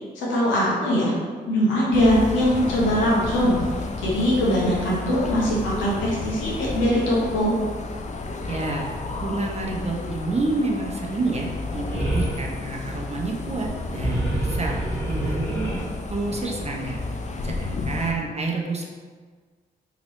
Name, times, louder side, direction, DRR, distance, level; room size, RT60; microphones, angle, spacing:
voice 1, 0.1-1.1 1.5-3.6 4.0-7.5, equal, 85° left, -6 dB, 0.9 m, -21 dB
sound 1, 1.9-18.1, left 3 dB, 40° left, 0.5 m, -32 dB
voice 2, 8.5-8.9 9.2-15.7 16.1-17.0 17.4-18.9, right 3 dB, 35° right, 0 dB, 0.7 m, -29 dB
sound 2, 11.8-12.4 13.8-15.8, right 1 dB, 5° left, 1.5 m, -27 dB
3.0 x 2.9 x 3.0 m, 1.5 s
supercardioid pair, 45°, 19 cm